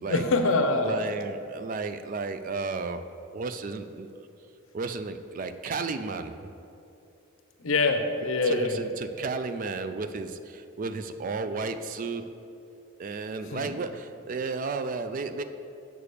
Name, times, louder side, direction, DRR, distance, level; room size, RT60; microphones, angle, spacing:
voice 1, 0.0-1.0 7.6-8.8 13.5-13.7, left 3 dB, 70° left, 6 dB, 0.7 m, -25 dB
voice 2, 0.8-4.1 4.7-6.5 8.4-12.3 13.0-15.4, right 4 dB, 40° right, 10 dB, 0.3 m, -33 dB
6.8 x 4.9 x 6.7 m, 2.7 s
head